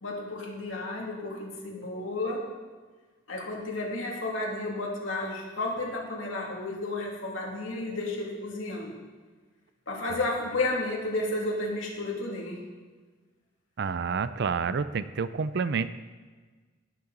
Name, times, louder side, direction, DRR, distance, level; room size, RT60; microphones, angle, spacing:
voice 1, 0.0-2.4 3.3-9.0 9.9-12.6, left 2 dB, 80° left, -2 dB, 2.5 m, -32 dB
voice 2, 13.8-15.9, right 5 dB, 60° right, 13 dB, 0.5 m, -29 dB
17.0 x 7.0 x 3.9 m, 1.4 s
head